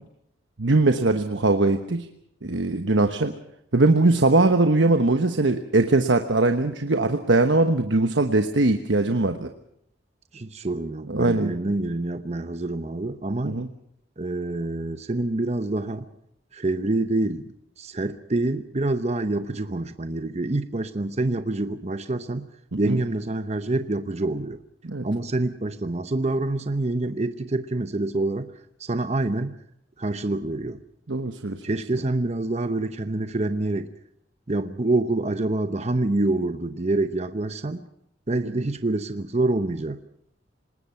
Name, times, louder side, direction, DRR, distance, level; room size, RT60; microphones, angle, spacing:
voice 1, 0.6-2.1 2.4-3.3 3.7-9.5 11.1-11.5 13.4-13.7 22.7-23.0 24.8-25.1 31.1-31.6, right 2 dB, 85° right, 7 dB, 1.2 m, -21 dB
voice 2, 10.3-13.6 14.2-16.1 16.5-22.5 22.8-24.6 25.0-28.5 28.8-29.6 30.0-30.8 31.6-33.9 34.5-37.8 38.3-40.0, right 2 dB, 35° right, 9 dB, 0.9 m, -26 dB
26.0 x 20.0 x 5.8 m, 0.73 s
head